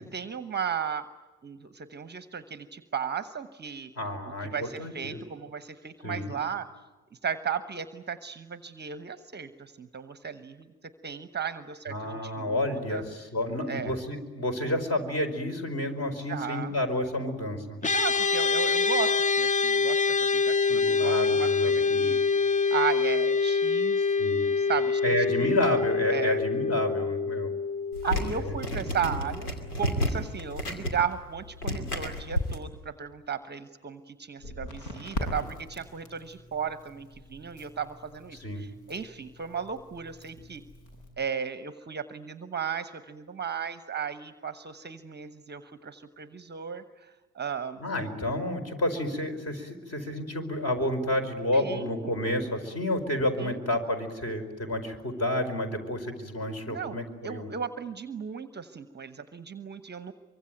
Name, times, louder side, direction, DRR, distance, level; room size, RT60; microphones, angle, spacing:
voice 1, 0.1-1.1 1.4-3.9 4.5-6.7 7.2-13.0 13.7-14.0 16.3-16.7 17.8-22.2 22.7-24.0 24.4-25.0 25.4-25.6 26.1-26.4 28.0-29.5 29.8-40.6 41.2-47.8 51.5-52.1 53.4-53.8 56.7-60.1, right 7 dB, 25° right, 12 dB, 1.1 m, -35 dB
voice 2, 4.0-5.2 6.0-6.3 11.9-17.8 20.7-22.2 24.2-24.5 25.0-27.5 28.3-28.5 38.4-38.6 47.8-57.5, left 1 dB, 35° left, 7 dB, 4.8 m, -30 dB
sound 1, 17.8-29.3, left 4 dB, 15° left, 0.9 m, -26 dB
sound 2, 27.9-32.6, left 1 dB, 90° left, 2.7 m, -31 dB
Crackle, 34.4-41.1, left 1 dB, 55° left, 7.8 m, -42 dB
24.5 x 24.0 x 9.2 m, 1.2 s
figure-of-eight pair, 60°, 44 cm